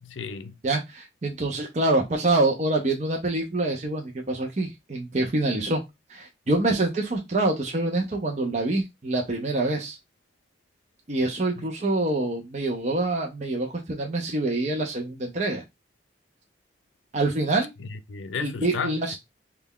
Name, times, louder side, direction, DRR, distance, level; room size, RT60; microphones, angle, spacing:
voice 1, 0.0-0.6 11.6-11.7 17.8-19.2, left 5 dB, 90° left, 0.5 m, -34 dB
voice 2, 0.6-5.8 6.1-10.0 11.1-15.6 17.1-17.7 18.4-19.2, right 2 dB, 40° right, 0.6 m, -26 dB
3.2 x 2.3 x 3.6 m
head